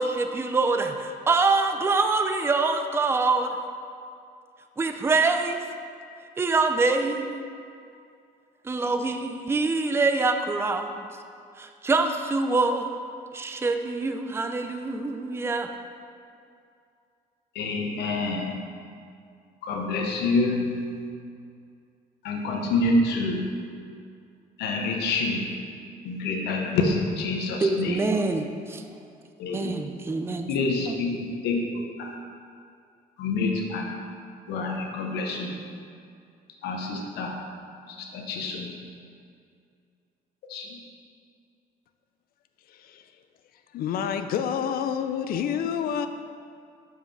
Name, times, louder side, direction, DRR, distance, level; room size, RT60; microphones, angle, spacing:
voice 1, 0.0-3.5 4.8-5.6 6.4-7.4 8.7-11.0 11.6-12.9 13.3-15.7 27.6-28.8 29.5-30.5 30.9-31.0, right 3 dB, 15° right, 6 dB, 0.4 m, -25 dB
voice 2, 17.5-18.5 19.6-20.9 22.2-23.5 24.6-25.5 26.0-28.0 29.4-29.7 30.5-32.1 33.2-33.9 34.5-35.5 36.6-37.4 37.9-38.7 40.5-40.8, left 3 dB, 80° left, 1 dB, 0.9 m, -27 dB
voice 3, 42.7-43.0 43.7-46.1, left 8 dB, 60° left, 9 dB, 0.5 m, -28 dB
5.5 x 4.8 x 5.9 m, 2.4 s
cardioid pair, 110°, 17 cm